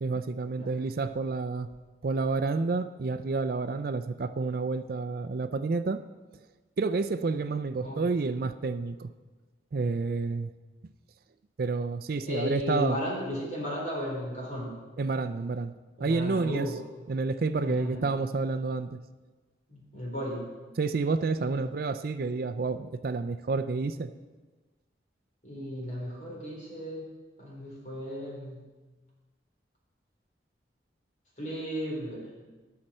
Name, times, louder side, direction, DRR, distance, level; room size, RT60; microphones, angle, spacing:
voice 1, 0.0-1.7 2.0-6.0 6.8-9.1 9.7-10.5 11.6-13.0 15.0-15.7 16.0-16.7 17.1-19.0 20.8-24.1, right 3 dB, 55° right, 11 dB, 0.4 m, -29 dB
voice 2, 12.3-14.8 16.0-16.7 17.6-18.1 19.7-20.5 21.6-21.7 25.4-27.1 27.4-28.6 31.4-32.3, equal, 40° left, -3 dB, 3.8 m, -35 dB
17.5 x 6.6 x 4.3 m, 1.3 s
head